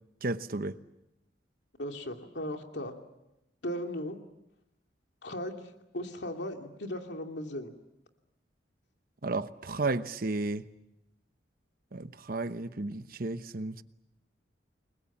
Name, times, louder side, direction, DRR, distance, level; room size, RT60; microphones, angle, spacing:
voice 1, 0.2-0.8 9.2-10.6 11.9-13.8, right 2 dB, 55° right, 1.0 m, -33 dB
voice 2, 1.8-2.9 3.6-4.2 5.2-7.7, left 1 dB, 70° left, 2.7 m, -37 dB
30.0 x 22.0 x 7.3 m
head